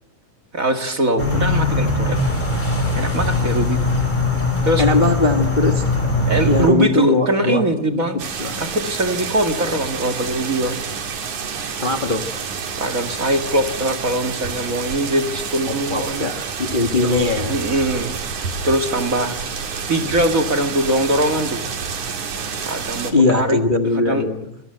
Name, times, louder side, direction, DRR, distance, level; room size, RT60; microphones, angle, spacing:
voice 1, 0.5-2.2 2.9-4.0 4.6-4.8 6.3-8.2 8.6-10.8 12.8-16.3 17.0-18.1 18.6-19.4 19.9-21.6 22.7-23.6 23.9-24.2, right 1 dB, 30° right, 6 dB, 1.8 m, -22 dB
sound 1, 1.2-6.7, left 2 dB, 15° left, 5.6 m, -20 dB
voice 2, 4.8-5.9 6.4-7.6 7.9-8.0 8.4-8.6 11.7-12.3 15.7-17.6 23.1-24.5, left 3 dB, 75° left, 5 dB, 0.4 m, -20 dB
sound 2, 8.2-23.1, right 6 dB, 65° right, 3.9 m, -29 dB
26.0 x 26.0 x 7.9 m, 0.75 s
omnidirectional pair, 3.7 m